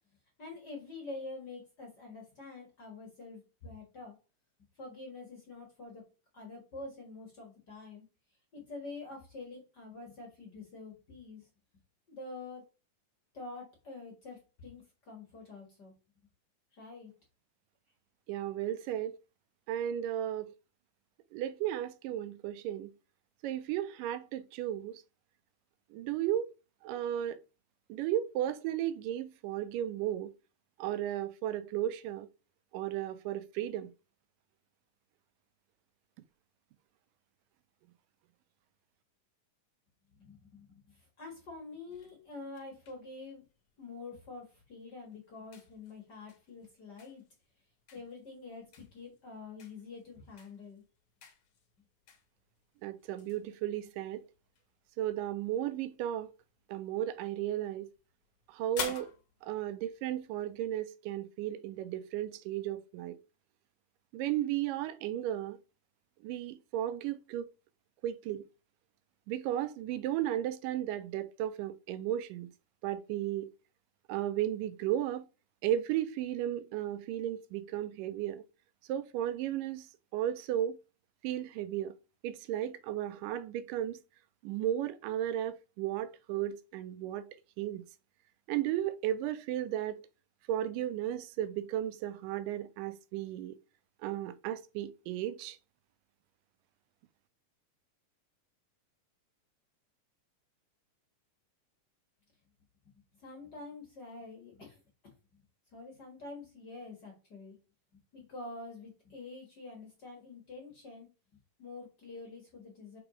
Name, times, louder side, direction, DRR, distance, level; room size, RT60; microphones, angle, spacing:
voice 1, 0.4-4.2 4.7-6.0 6.3-8.0 8.5-11.5 12.1-12.6 13.3-15.9 16.7-17.1 40.1-43.4 43.8-47.2 47.9-50.8 103.2-104.8 105.3-105.4 105.7-107.6 108.1-111.1 111.6-113.0, left 3 dB, 40° left, 1.7 m, -47 dB
voice 2, 18.3-19.2 19.7-20.5 21.3-22.9 23.4-25.0 25.9-26.5 26.8-27.4 27.9-30.3 30.8-32.3 32.7-33.9 52.8-54.2 55.0-56.3 56.7-57.9 58.5-59.1 59.4-63.2 64.1-65.6 66.2-67.5 68.0-68.4 69.3-72.5 72.8-73.5 74.1-75.3 75.6-78.4 78.9-79.9 80.1-80.8 81.2-81.9 82.2-84.0 84.4-87.3 87.6-87.8 88.5-90.0 90.5-93.5 94.0-95.6, right 12 dB, 85° right, 2.2 m, -34 dB
sound 1, 41.9-60.7, left 7 dB, 60° left, 1.8 m, -51 dB
4.8 x 4.8 x 4.9 m
omnidirectional pair, 3.8 m